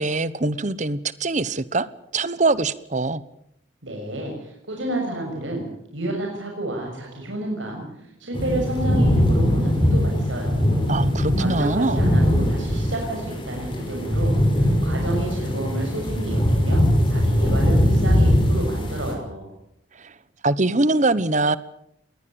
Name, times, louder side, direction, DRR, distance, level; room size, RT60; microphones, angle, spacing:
voice 1, 0.0-1.9 2.1-3.2 10.9-12.0 20.0-20.1 20.4-21.6, right 2 dB, 40° right, 17 dB, 1.1 m, -23 dB
voice 2, 3.8-5.6 5.9-10.7 11.4-19.5, right 1 dB, 85° right, 0 dB, 6.5 m, -30 dB
sound 1, 8.3-19.1, equal, 25° left, 5.8 m, -21 dB
21.5 x 19.0 x 8.8 m, 0.74 s
head